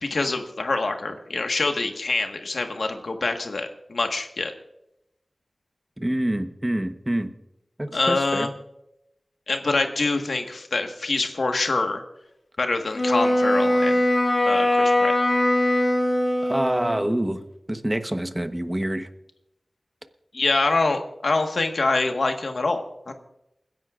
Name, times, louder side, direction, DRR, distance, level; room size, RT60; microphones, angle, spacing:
voice 1, 0.0-4.5 7.9-8.5 9.5-12.0 12.6-14.0 14.5-15.1 20.3-23.1, left 3 dB, 80° left, 4 dB, 1.5 m, -25 dB
voice 2, 6.0-7.3 7.8-8.5 16.4-17.4 17.7-19.1, right 1 dB, 20° right, 8 dB, 1.0 m, -26 dB
Wind instrument woodwind instrument, 12.9-17.1, left 1 dB, 40° left, 2.7 m, -21 dB
29.0 x 11.0 x 2.5 m, 0.83 s
wide cardioid pair, 75°, 0 cm